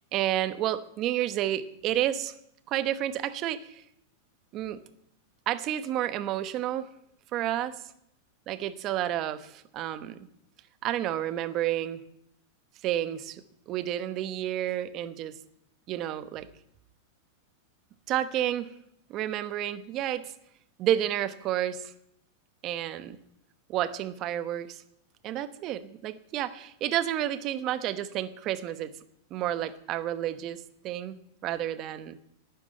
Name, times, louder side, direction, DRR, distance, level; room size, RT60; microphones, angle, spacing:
voice 1, 0.1-2.3 2.7-3.8 4.5-4.8 5.5-6.9 7.3-7.7 8.5-10.2 10.8-12.0 12.8-15.3 15.9-16.5 18.1-18.7 19.1-20.3 20.8-21.9 22.6-23.2 23.7-24.8 25.2-28.9 29.3-31.1 31.4-32.2, right 12 dB, 30° right, 13 dB, 1.1 m, -30 dB
12.0 x 9.6 x 9.6 m, 0.73 s
supercardioid pair, 160°, 0 cm